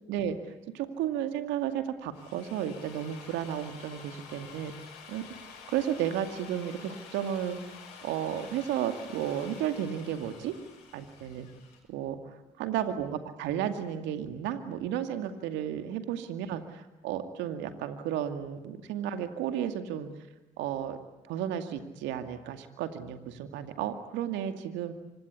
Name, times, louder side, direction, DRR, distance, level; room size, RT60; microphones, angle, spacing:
voice 1, 0.7-4.7 5.1-5.2 5.7-7.6 8.0-10.5 10.9-11.5 11.9-12.3 12.6-20.1 20.6-21.0 21.3-24.9, right 10 dB, 80° right, 8 dB, 2.3 m, -33 dB
Drill, 2.0-11.8, left 6 dB, 90° left, 6.3 m, -49 dB
26.0 x 21.5 x 9.8 m, 1.1 s
hypercardioid pair, 50°, 19 cm